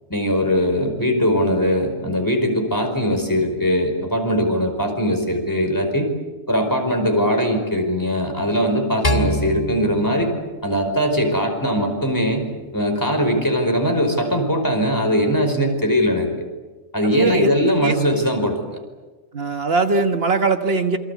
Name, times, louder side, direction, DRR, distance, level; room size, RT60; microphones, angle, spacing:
voice 1, 0.1-6.1 6.5-10.3 10.6-16.5 16.9-18.6, equal, 15° left, 4 dB, 5.0 m, -20 dB
sound 1, 9.0-11.4, equal, 35° left, 2.4 m, -26 dB
voice 2, 17.0-17.9 19.3-21.0, right 3 dB, 65° right, 7 dB, 1.6 m, -20 dB
28.0 x 24.5 x 8.4 m, 1.3 s
omnidirectional pair, 1.1 m